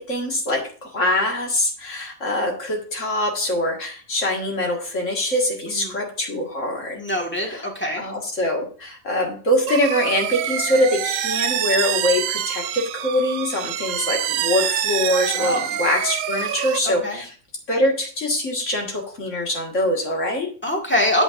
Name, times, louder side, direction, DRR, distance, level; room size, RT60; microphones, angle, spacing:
voice 1, 0.0-7.0 7.5-7.7 8.0-17.3 17.7-20.5, left 1 dB, 60° left, 0 dB, 2.3 m, -23 dB
voice 2, 7.0-8.0 15.4-15.6 16.9-17.2 20.6-21.2, left 1 dB, 10° left, 0 dB, 1.8 m, -24 dB
sound 1, 9.7-16.8, right 11 dB, 75° right, 0.9 m, -26 dB
8.7 x 8.7 x 2.6 m, 0.41 s
omnidirectional pair, 1.4 m